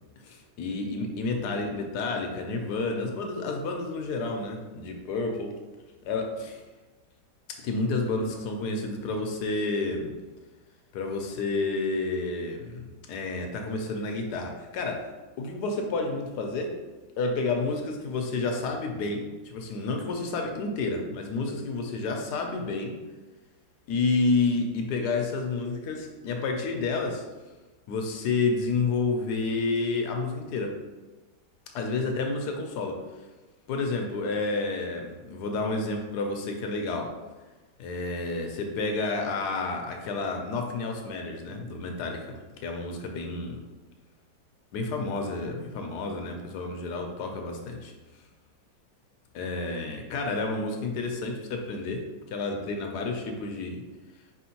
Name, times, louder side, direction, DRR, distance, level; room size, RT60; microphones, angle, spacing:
voice 1, 0.2-5.6 6.0-6.5 7.6-10.1 10.9-15.0 15.4-16.7 17.2-22.9 23.9-27.2 27.9-30.7 31.7-33.0 33.7-37.1 37.8-43.6 44.7-47.9 49.3-53.8, left 3 dB, 70° left, 3 dB, 1.0 m, -30 dB
4.4 x 3.5 x 2.8 m, 1.2 s
omnidirectional pair, 2.1 m